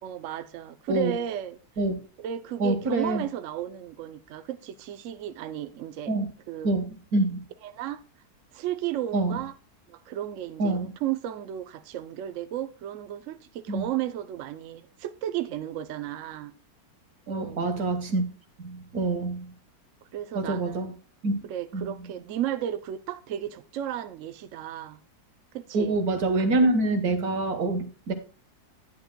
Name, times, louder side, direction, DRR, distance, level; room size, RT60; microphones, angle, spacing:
voice 1, 0.0-1.6 2.2-6.1 6.5-6.7 7.6-8.0 8.5-9.5 9.9-16.5 17.3-17.6 20.1-20.9 21.4-25.0 25.5-26.0, right 11 dB, 75° right, 0.7 m, -34 dB
voice 2, 2.6-3.2 6.1-6.3 6.6-6.8 7.1-7.4 9.1-9.3 10.6-10.9 13.7-13.9 17.3-18.2 18.6-19.5 20.3-20.9 21.2-21.4 21.7-21.8 25.7-28.1, right 2 dB, 55° right, 1.7 m, -25 dB
11.5 x 9.6 x 2.2 m
omnidirectional pair, 2.0 m